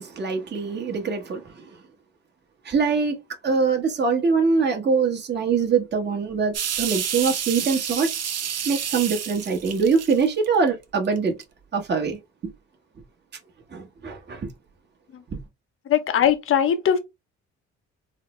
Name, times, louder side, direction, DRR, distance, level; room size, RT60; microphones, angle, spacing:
voice 1, 0.0-1.8 2.6-3.2 3.4-8.1 8.6-11.3 11.7-12.2 13.7-14.5, right 5 dB, 35° right, 1.0 m, -23 dB
sound 1, 6.5-10.7 11.2-11.4, right 8 dB, 55° right, 0.7 m, -29 dB
voice 2, 15.9-17.0, left 9 dB, 45° left, 0.7 m, -20 dB
4.1 x 2.0 x 3.0 m
cardioid pair, 90°, 30 cm